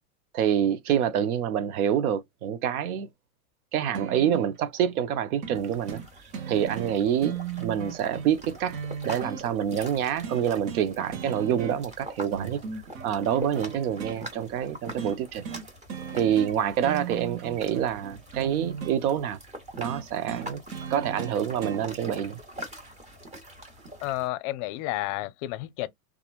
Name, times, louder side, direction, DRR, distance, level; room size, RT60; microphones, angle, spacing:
voice 1, 0.3-3.1 3.7-6.0 6.5-8.8 9.0-15.5 16.1-19.4 19.8-20.6 20.9-22.4, right 9 dB, 85° right, 0.6 m, -27 dB
sound 1, 3.9-4.6 5.4-5.6 5.9-6.1 6.3-9.4 10.2-10.9 11.1-12.0 12.3-14.2 15.0-15.2 15.4-15.6 15.9-16.5 16.8-19.0 19.8-21.8 22.8-22.9, right 7 dB, 65° right, 1.0 m, -37 dB
sound 2, 5.5-24.3, right 1 dB, 15° right, 0.9 m, -44 dB
voice 2, 24.0-25.9, left 17 dB, 50° left, 0.5 m, -31 dB
2.8 x 2.4 x 2.3 m
supercardioid pair, 115°, 43 cm